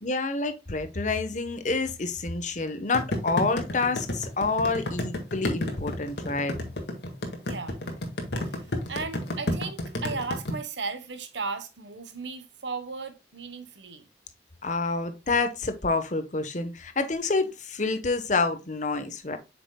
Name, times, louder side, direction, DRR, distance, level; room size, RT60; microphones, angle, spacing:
voice 1, 0.0-6.6 14.6-19.4, left 3 dB, 45° left, 1.0 m, -28 dB
sound 1, 2.9-10.5, left 1 dB, 70° left, 1.7 m, -30 dB
voice 2, 7.5-7.8 8.5-14.1, right 4 dB, 90° right, 1.1 m, -36 dB
8.0 x 5.9 x 2.2 m
head